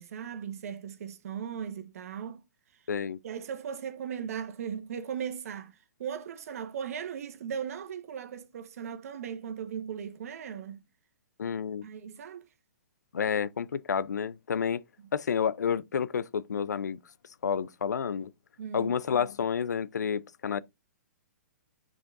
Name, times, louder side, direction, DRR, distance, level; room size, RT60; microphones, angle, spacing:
voice 1, 0.0-2.4 3.2-10.9 11.8-12.4 18.6-19.0, right 8 dB, 60° right, 1.3 m, -38 dB
voice 2, 2.9-3.2 11.4-11.9 13.1-14.8 15.1-17.0 17.4-18.3 18.7-20.6, left 7 dB, 90° left, 0.5 m, -30 dB
10.5 x 4.9 x 2.6 m
hypercardioid pair, 150°, 9 cm